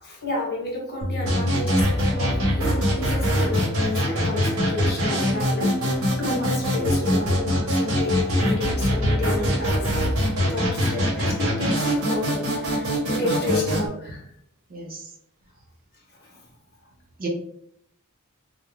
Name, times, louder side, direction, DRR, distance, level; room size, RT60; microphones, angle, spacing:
voice 1, 0.0-10.1 10.4-14.2 16.1-16.4, left 3 dB, 50° left, -1 dB, 0.8 m, -31 dB
Bass guitar, 1.0-7.3, left 1 dB, 25° left, 0.4 m, -34 dB
sound 1, 1.3-13.9, equal, 75° right, 0.9 m, -23 dB
voice 2, 13.2-13.6 14.7-15.1 17.2-17.3, right 2 dB, 40° right, 0 dB, 0.5 m, -35 dB
2.3 x 2.1 x 3.1 m, 0.70 s
head